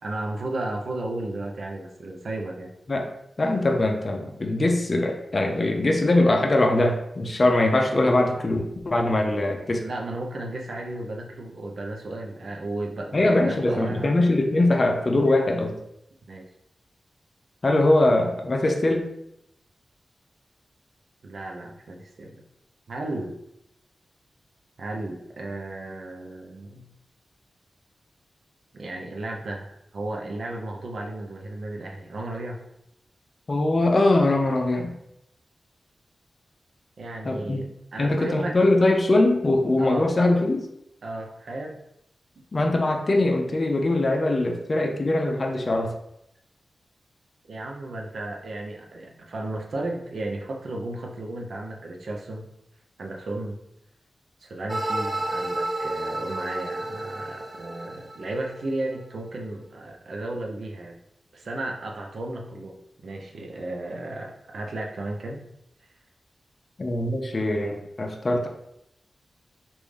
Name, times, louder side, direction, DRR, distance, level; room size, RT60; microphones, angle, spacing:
voice 1, 0.0-2.7 9.8-14.1 16.3-16.5 21.2-22.4 22.9-23.4 24.8-26.8 28.7-32.6 37.0-37.7 37.9-38.6 39.8-40.1 41.0-41.8 47.5-52.4 53.0-53.6 54.4-60.9 61.3-62.8 63.0-65.4, right 2 dB, 75° right, 1 dB, 0.6 m, -34 dB
voice 2, 3.4-9.8 13.1-15.8 17.6-19.1 33.5-34.9 37.2-37.7 38.0-40.7 42.5-45.9 66.8-68.5, left 2 dB, 50° left, 3 dB, 0.5 m, -22 dB
sound 1, 54.7-58.7, right 2 dB, 35° right, 0.5 m, -31 dB
3.3 x 2.6 x 3.4 m, 0.79 s
cardioid pair, 40°, 0 cm